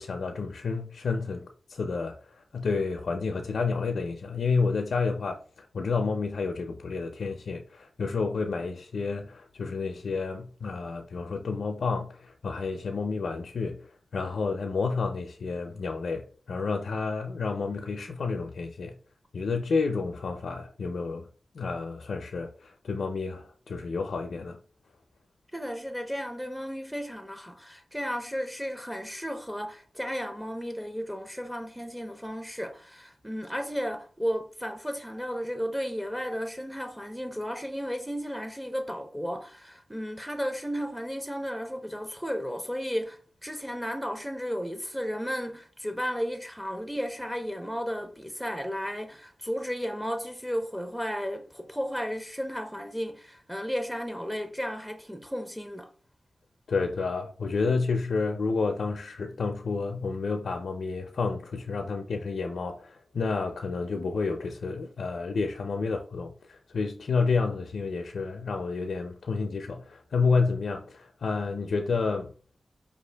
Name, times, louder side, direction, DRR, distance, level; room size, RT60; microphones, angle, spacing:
voice 1, 0.0-18.9 19.3-21.3 21.5-24.6 56.7-72.3, left 4 dB, 80° left, 0.4 m, -30 dB
voice 2, 25.5-55.9, equal, 5° right, 0.6 m, -34 dB
4.9 x 2.4 x 3.3 m
wide cardioid pair, 70°, 0 cm